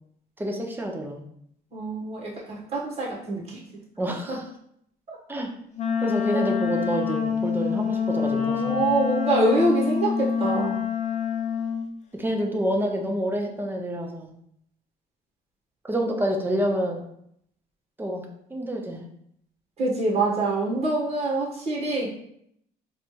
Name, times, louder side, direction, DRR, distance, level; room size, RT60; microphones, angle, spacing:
voice 1, 0.4-1.2 4.0-4.4 5.3-5.5 6.0-8.8 12.1-14.3 15.8-17.0 18.0-19.1, right 1 dB, 10° right, 1 dB, 0.7 m, -28 dB
voice 2, 1.7-3.6 4.3-4.4 5.1-5.2 6.3-6.4 8.4-10.8 19.8-22.1, right 2 dB, 40° right, -3 dB, 1.4 m, -25 dB
Wind instrument woodwind instrument, 5.8-11.9, left 7 dB, 45° left, 0.7 m, -26 dB
4.3 x 2.5 x 3.2 m, 0.71 s
cardioid pair, 110°, 17 cm